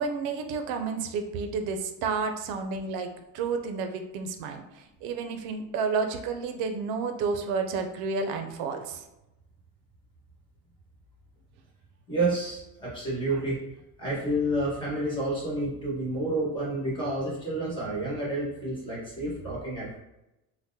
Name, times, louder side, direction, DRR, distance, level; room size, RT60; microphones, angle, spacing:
voice 1, 0.0-9.0 13.3-13.4, right 4 dB, 85° right, 6 dB, 0.5 m, -31 dB
voice 2, 12.1-13.6 14.0-20.0, right 1 dB, 15° left, -7 dB, 1.2 m, -29 dB
3.7 x 2.1 x 2.7 m, 0.92 s
cardioid pair, 160°, 36 cm